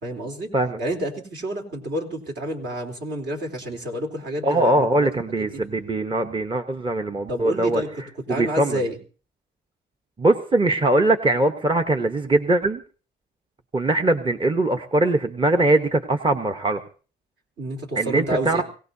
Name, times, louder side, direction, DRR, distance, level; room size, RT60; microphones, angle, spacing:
voice 1, 0.0-0.5 0.8-5.1 5.4-5.6 7.3-9.0 17.6-18.6, right 1 dB, 60° right, 1 dB, 3.6 m, -29 dB
voice 2, 4.4-7.8 8.3-8.8 10.2-12.8 13.7-16.8 18.0-18.6, right 2 dB, 25° right, 6 dB, 1.0 m, -21 dB
23.0 x 17.0 x 2.8 m, 0.38 s
cardioid pair, 90°, 20 cm